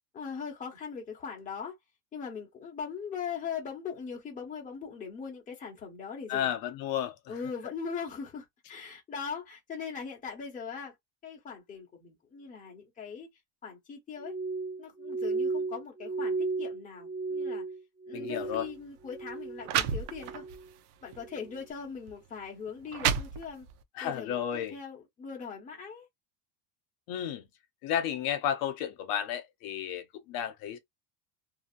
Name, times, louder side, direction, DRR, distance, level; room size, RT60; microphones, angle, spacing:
voice 1, 0.1-1.7 2.1-6.5 7.3-10.9 11.2-13.3 13.6-14.3 14.8-17.6 18.1-20.4 21.0-23.7 24.0-26.1, left 6 dB, 15° left, 1.0 m, -40 dB
voice 2, 6.3-7.4 18.1-18.7 23.9-24.8 27.1-27.5 27.8-30.8, left 9 dB, 50° left, 0.7 m, -32 dB
Glass, 14.2-18.8 19.0-19.7 20.1-20.6 21.2-21.5, right 3 dB, 5° right, 0.8 m, -34 dB
sound 1, 18.4-18.6 19.3-19.4 19.6-20.6 21.1-21.3 22.1-22.2 22.7-23.8, right 9 dB, 70° right, 0.6 m, -31 dB
2.8 x 2.7 x 2.5 m
cardioid pair, 170°, 47 cm